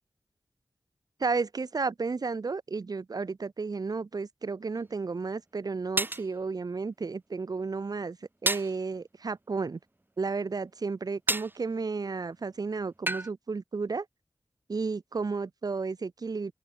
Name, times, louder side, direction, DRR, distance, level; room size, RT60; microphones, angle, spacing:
voice 1, 1.2-8.2 8.4-9.8 10.2-14.1 14.7-16.5, right 4 dB, 55° right, 0.7 m, -32 dB
sound 1, 4.8-4.9 6.0-6.3 8.5-8.8 11.3-11.6 13.1-13.3, right 2 dB, 25° right, 1.8 m, -29 dB
wide cardioid pair, 55°, 8 cm